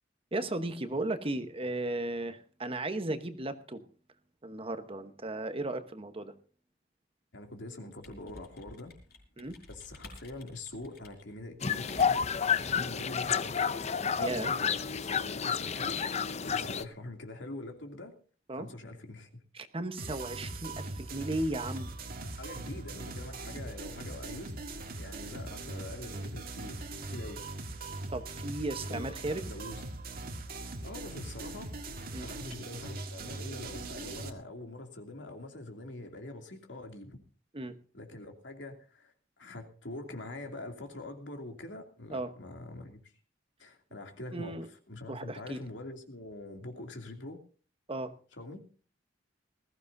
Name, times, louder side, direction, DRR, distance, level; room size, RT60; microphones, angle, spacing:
voice 1, 0.3-3.8 4.4-6.3 9.4-9.6 14.2-14.5 18.5-18.7 19.5-21.9 28.1-29.5 32.1-32.3 37.5-37.7 42.1-42.3 44.3-44.7 45.1-45.6 47.9-48.2, right 2 dB, 30° right, 9 dB, 1.1 m, -35 dB
voice 2, 7.3-8.9 9.4-13.5 14.0-16.0 16.4-18.1 18.6-19.4 22.2-24.6 24.9-27.4 28.9-29.8 30.5-31.7 32.2-37.2 37.9-43.1 43.6-47.4 48.4-48.6, left 2 dB, 80° left, 4 dB, 2.7 m, -44 dB
sound 1, 7.9-12.4, left 2 dB, 60° left, 4.9 m, -52 dB
sound 2, 11.6-16.8, left 7 dB, 40° left, 0.6 m, -30 dB
sound 3, 20.0-34.3, right 2 dB, 55° right, 1.7 m, -41 dB
20.5 x 14.5 x 2.7 m, 0.40 s
head